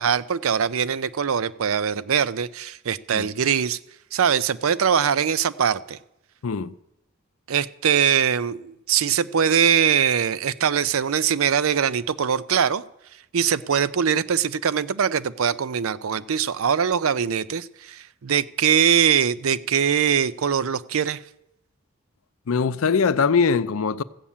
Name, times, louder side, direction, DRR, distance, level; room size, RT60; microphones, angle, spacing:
voice 1, 0.0-3.8 4.1-6.0 7.5-12.8 13.3-21.2, right 7 dB, 80° right, 0.5 m, -22 dB
voice 2, 6.4-6.7 22.5-24.0, left 5 dB, 80° left, 0.5 m, -21 dB
15.0 x 7.2 x 8.5 m
head